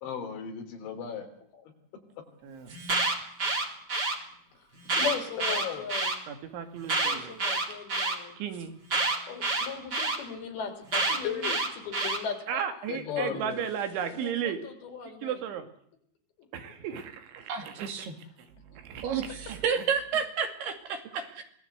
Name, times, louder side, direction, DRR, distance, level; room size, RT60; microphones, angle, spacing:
voice 1, 0.0-1.3 5.4-5.8 11.2-11.6 12.9-13.6, left 8 dB, 80° left, 6 dB, 5.5 m, -35 dB
Alarm, 2.7-4.2 4.8-6.2 6.8-8.2 8.9-10.2 10.9-12.2, right 3 dB, 25° right, 3.0 m, -28 dB
voice 2, 4.9-6.2 7.0-8.4 9.2-12.6 13.1-13.7 14.0-15.4, left 6 dB, 60° left, 6 dB, 5.0 m, -38 dB
voice 3, 6.3-7.4 8.4-8.7 12.5-14.6 15.2-15.7 16.5-18.1 18.4-19.9 20.1-20.2 21.1-21.3, right 8 dB, 80° right, 7 dB, 4.6 m, -35 dB
voice 4, 17.5-18.1 19.0-21.4, right 6 dB, 60° right, 6 dB, 4.1 m, -31 dB
25.0 x 18.5 x 8.1 m, 0.64 s
omnidirectional pair, 5.3 m